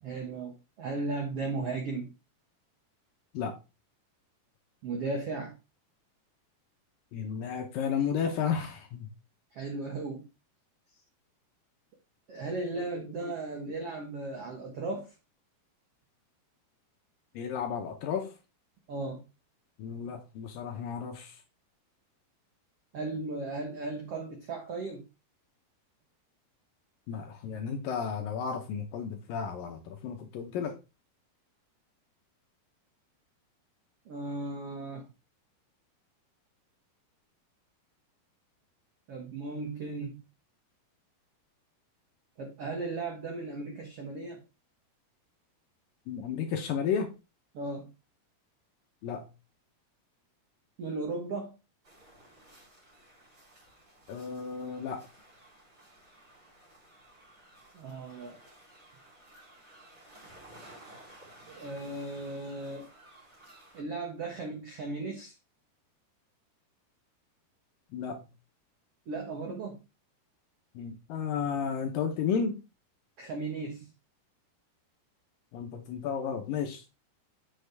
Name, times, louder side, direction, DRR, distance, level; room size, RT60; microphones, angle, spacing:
voice 1, 0.0-2.1 4.8-5.5 9.5-10.2 12.3-15.1 18.9-19.2 22.9-25.0 34.1-35.1 39.1-40.2 42.4-44.4 47.5-47.9 50.8-51.5 57.7-58.4 61.5-62.9 63.7-65.3 69.1-69.8 73.2-73.8, right 3 dB, 75° right, 1.3 m, -36 dB
voice 2, 7.1-9.1 12.7-13.0 17.4-18.3 19.8-21.4 27.1-30.8 46.1-47.1 49.0-49.3 54.1-55.0 67.9-68.2 70.8-72.6 75.5-76.9, left 7 dB, 75° left, 2.2 m, -33 dB
sound 1, 51.8-63.8, right 1 dB, 30° right, 3.7 m, -55 dB
8.0 x 6.3 x 3.4 m
omnidirectional pair, 4.8 m